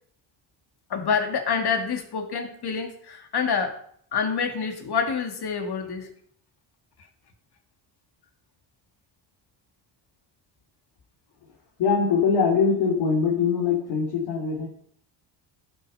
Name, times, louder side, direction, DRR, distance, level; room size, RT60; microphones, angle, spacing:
voice 1, 0.9-3.8 4.1-6.1, left 6 dB, 50° left, 5 dB, 2.5 m, -27 dB
voice 2, 11.8-14.7, left 5 dB, 70° left, -4 dB, 3.2 m, -22 dB
11.5 x 9.1 x 5.6 m, 0.64 s
supercardioid pair, 75°, 50 cm